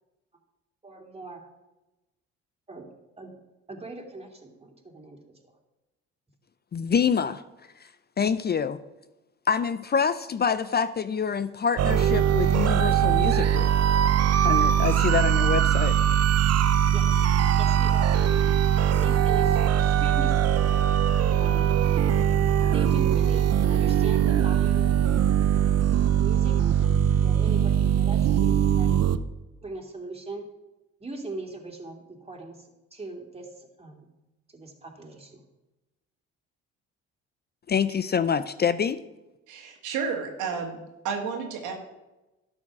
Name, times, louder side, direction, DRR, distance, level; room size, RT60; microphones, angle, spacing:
voice 1, 0.8-1.5 2.7-2.9 3.2-3.4 3.7-5.2 16.9-17.2 17.6-18.6 18.9-20.8 21.4-21.7 22.7-25.9 26.2-29.1 29.6-30.5 31.0-34.0 34.5-35.4, right 2 dB, 20° right, 2 dB, 2.5 m, -41 dB
voice 2, 6.7-7.4 8.2-8.8 9.5-13.7 14.4-16.0 37.7-39.0, left 6 dB, 35° left, 14 dB, 0.5 m, -26 dB
sound 1, 11.8-29.2, right 9 dB, 55° right, 0.7 m, -21 dB
voice 3, 39.5-40.8 41.0-41.7, right 5 dB, 85° right, 2 dB, 2.0 m, -31 dB
11.5 x 6.3 x 6.0 m, 1.0 s
supercardioid pair, 70°, 30 cm